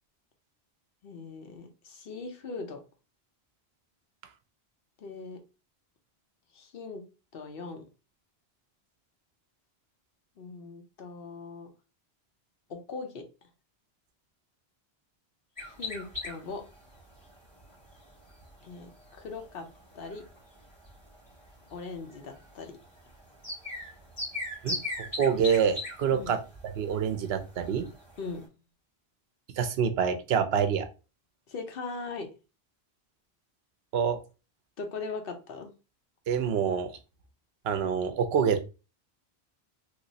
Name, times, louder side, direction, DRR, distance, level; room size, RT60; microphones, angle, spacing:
voice 1, 1.0-2.8 5.0-5.4 6.5-7.0 7.3-7.9 10.4-11.7 12.7-13.2 15.8-16.6 18.6-19.7 19.9-20.2 21.7-22.7 26.1-26.3 28.2-28.5 31.5-32.3 34.8-35.7, left 4 dB, 65° left, 5 dB, 0.9 m, -40 dB
sound 1, 15.6-28.4, left 2 dB, 20° left, 2.0 m, -41 dB
voice 2, 24.6-26.4 26.8-27.9 29.6-30.9 33.9-34.2 36.3-36.9 37.6-38.7, right 7 dB, 75° right, 9 dB, 0.8 m, -26 dB
3.1 x 3.0 x 2.7 m, 0.31 s
omnidirectional pair, 1.1 m